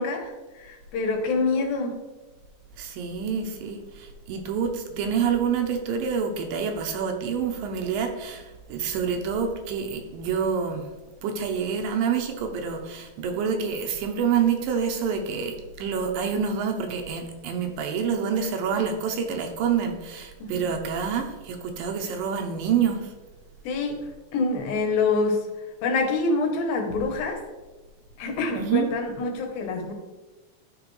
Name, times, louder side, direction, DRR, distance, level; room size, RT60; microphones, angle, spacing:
voice 1, 0.0-2.0 20.4-20.7 23.6-24.0 24.3-25.5 25.8-27.4 28.2-29.9, left 3 dB, 75° left, 3 dB, 2.8 m, -26 dB
voice 2, 2.8-10.9 11.2-23.1 28.6-28.9, right 7 dB, 80° right, 4 dB, 2.3 m, -27 dB
12.5 x 4.2 x 3.2 m, 1.2 s
omnidirectional pair, 4.3 m